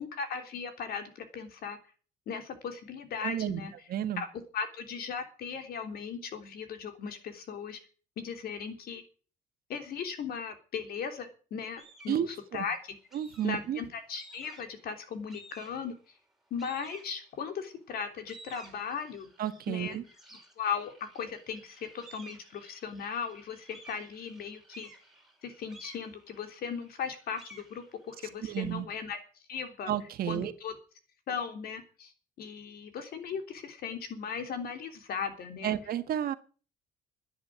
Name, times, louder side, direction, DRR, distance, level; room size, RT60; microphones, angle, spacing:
voice 1, 0.0-1.8 2.3-3.7 4.2-4.3 4.5-7.8 8.2-9.0 9.7-12.8 13.4-16.1 16.5-19.3 19.7-20.0 20.6-24.9 25.4-29.2 29.5-29.9 30.3-30.7 31.3-32.1 32.4-35.8, left 6 dB, 65° left, 6 dB, 3.4 m, -37 dB
voice 2, 3.2-3.6 3.9-4.2 12.1-12.7 13.1-13.8 19.4-20.0 28.4-28.9 29.9-30.5 35.6-36.3, right 10 dB, 60° right, 10 dB, 1.5 m, -32 dB
sound 1, 11.8-12.3 13.1-13.7 14.1-14.8 15.3-16.0 16.6-17.5 18.0-28.7, right 1 dB, ahead, 4.5 m, -54 dB
10.5 x 10.0 x 9.1 m, 0.40 s
cardioid pair, 110°, 17 cm